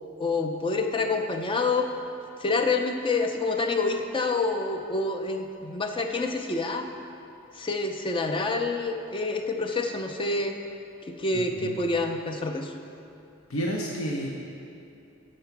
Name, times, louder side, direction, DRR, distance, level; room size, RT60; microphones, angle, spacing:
voice 1, 0.2-1.9 2.4-6.9 7.5-10.5 11.1-12.7, left 3 dB, 25° left, 5 dB, 0.5 m, -27 dB
voice 2, 11.3-11.8 13.5-14.3, equal, 80° left, -1 dB, 0.8 m, -31 dB
6.8 x 6.4 x 5.9 m, 2.7 s
head